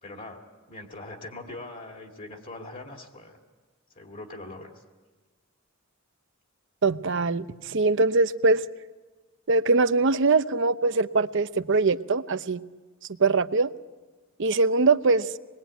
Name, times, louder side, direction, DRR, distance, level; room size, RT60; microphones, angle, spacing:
voice 1, 0.0-3.4 3.9-4.8, left 2 dB, 40° left, 2 dB, 2.4 m, -42 dB
voice 2, 6.8-8.6 9.5-12.6 13.2-13.7 14.4-15.3, right 3 dB, 65° right, 12 dB, 0.8 m, -22 dB
27.0 x 21.0 x 9.1 m, 1.3 s
head